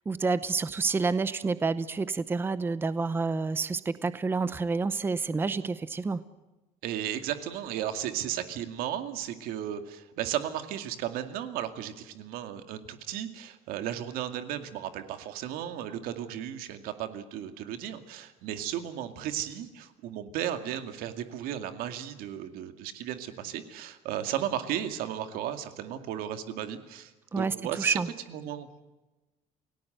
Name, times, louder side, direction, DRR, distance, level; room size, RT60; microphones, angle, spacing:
voice 1, 0.1-6.2 27.3-28.1, right 4 dB, 15° right, 14 dB, 0.7 m, -29 dB
voice 2, 6.8-28.0 28.3-28.7, right 11 dB, 90° right, 8 dB, 2.3 m, -35 dB
29.0 x 18.0 x 8.0 m, 1.1 s
cardioid pair, 170°, 15 cm